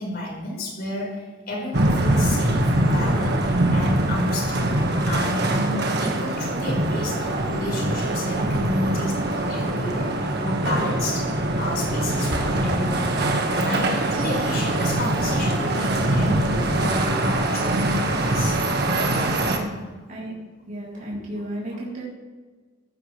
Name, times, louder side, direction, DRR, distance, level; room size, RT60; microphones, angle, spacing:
voice 1, 0.0-18.6 19.2-19.4 21.7-21.8, left 1 dB, 50° left, -2 dB, 4.8 m, -31 dB
sound 1, 1.7-19.6, right 1 dB, 55° right, 1.6 m, -23 dB
Explosion, 12.3-14.1, equal, 25° right, 2.3 m, -34 dB
voice 2, 19.4-20.3 20.7-22.0, right 1 dB, 40° right, -6 dB, 3.5 m, -34 dB
15.5 x 14.5 x 3.3 m, 1.3 s
head